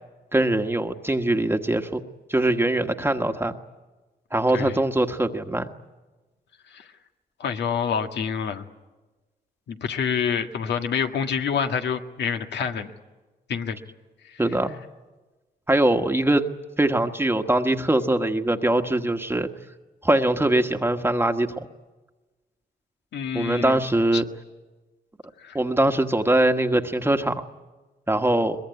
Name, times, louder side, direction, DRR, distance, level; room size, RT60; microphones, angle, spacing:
voice 1, 0.3-2.0 2.3-3.6 4.3-5.7 14.4-14.8 15.7-16.4 16.8-19.5 20.0-21.7 23.3-24.2 25.5-27.5 28.1-28.6, right 1 dB, 15° right, 5 dB, 1.3 m, -22 dB
voice 2, 7.4-8.6 9.7-12.9 13.5-13.8 23.1-23.8 24.1-24.2 25.4-25.6, left 7 dB, 85° left, 6 dB, 1.7 m, -27 dB
23.0 x 21.5 x 9.5 m, 1.2 s
cardioid pair, 80°, 17 cm